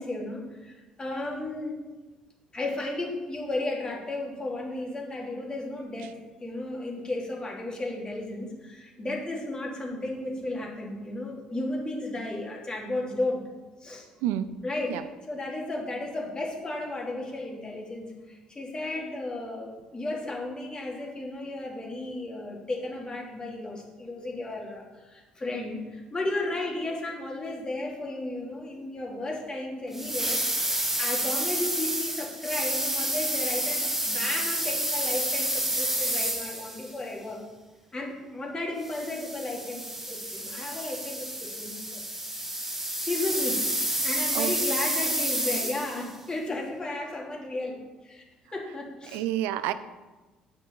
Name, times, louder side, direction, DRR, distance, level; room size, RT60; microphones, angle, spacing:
voice 1, 0.0-1.8 2.5-13.4 13.8-14.0 14.6-37.4 37.9-42.0 43.0-43.6 44.0-47.8 48.0-48.2 48.5-49.2, left 2 dB, 25° left, -2 dB, 2.8 m, -34 dB
voice 2, 14.2-14.5 14.9-15.0 44.3-44.5 49.1-49.7, right 12 dB, 65° right, 13 dB, 0.5 m, -28 dB
sound 1, 29.9-36.9 38.8-46.1, right 1 dB, 10° right, 1.3 m, -29 dB
9.2 x 6.1 x 5.3 m, 1.2 s
figure-of-eight pair, 50°, 3 cm